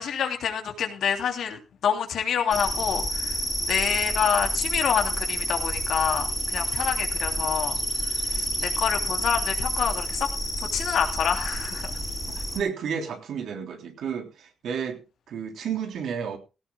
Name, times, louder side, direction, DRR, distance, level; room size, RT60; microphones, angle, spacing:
voice 1, 0.0-3.4 3.7-7.8 8.0-10.3 10.6-12.0, left 8 dB, 65° left, 4 dB, 3.2 m, -27 dB
sound 1, 2.5-12.6, equal, 5° right, 4.0 m, -29 dB
voice 2, 12.3-16.4, right 7 dB, 70° right, 5 dB, 3.4 m, -32 dB
17.5 x 17.5 x 2.3 m, 0.30 s
cardioid pair, 90°, 0 cm